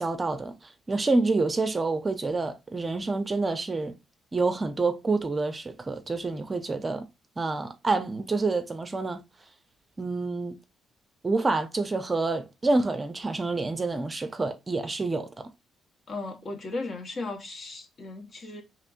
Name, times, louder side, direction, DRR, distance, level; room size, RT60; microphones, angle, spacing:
voice 1, 0.0-3.9 4.3-7.1 7.4-9.2 10.0-10.6 11.2-15.5, right 3 dB, 25° right, 0.5 m, -28 dB
voice 2, 16.1-18.6, left 3 dB, 50° left, 1.1 m, -36 dB
4.2 x 3.0 x 2.5 m
cardioid pair, 90°, 0 cm